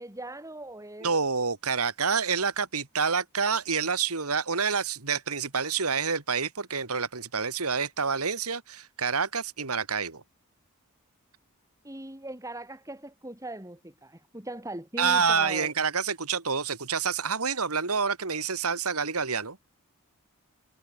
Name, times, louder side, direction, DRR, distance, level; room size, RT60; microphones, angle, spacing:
voice 1, 0.0-1.1 11.8-15.7, right 1 dB, 15° right, 3.8 m, -39 dB
voice 2, 1.0-10.2 15.0-19.6, right 5 dB, 80° right, 2.6 m, -28 dB
head